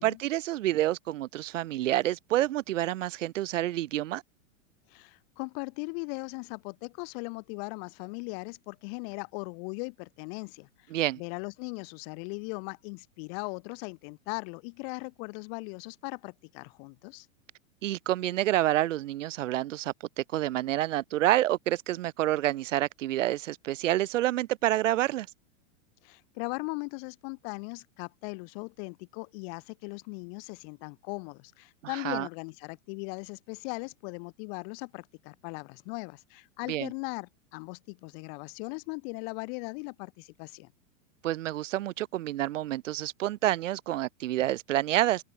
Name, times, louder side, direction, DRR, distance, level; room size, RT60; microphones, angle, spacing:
voice 1, 0.0-4.2 10.9-11.2 17.8-25.3 32.0-32.3 36.7-36.9 41.2-45.2, right 14 dB, 70° right, 2.3 m, -28 dB
voice 2, 4.9-17.3 26.0-40.7, left 40 dB or more, 50° left, 4.8 m, -39 dB
hypercardioid pair, 130°, 38 cm